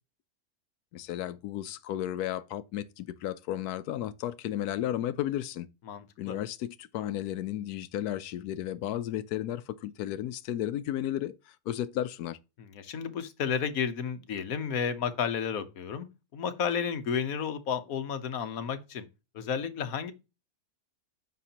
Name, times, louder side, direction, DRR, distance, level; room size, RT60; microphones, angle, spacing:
voice 1, 0.9-5.7 6.2-11.4 11.7-12.4, left 12 dB, 85° left, 1.1 m, -33 dB
voice 2, 5.9-6.4 12.6-16.1 16.3-19.1 19.3-20.1, left 7 dB, 70° left, 1.3 m, -32 dB
9.4 x 6.6 x 2.8 m
omnidirectional pair, 1.6 m